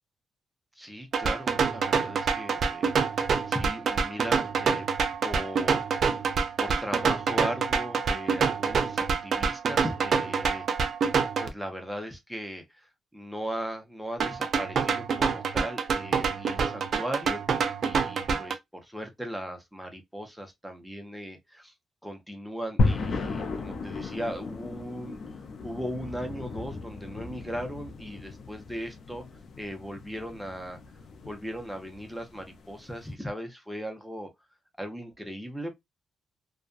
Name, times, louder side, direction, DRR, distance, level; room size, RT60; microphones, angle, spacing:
voice 1, 0.8-4.9 5.2-6.2 6.6-10.7 11.4-17.4 17.8-21.7 22.0-25.2 25.6-29.2 29.6-30.8 31.2-34.3 34.8-35.8, equal, ahead, 0.7 m, -38 dB
sound 1, 1.1-11.5 14.2-18.5, right 5 dB, 60° right, 0.4 m, -27 dB
sound 2, 22.8-33.0, left 3 dB, 65° left, 0.5 m, -34 dB
2.5 x 2.2 x 2.3 m
cardioid pair, 105°, 0 cm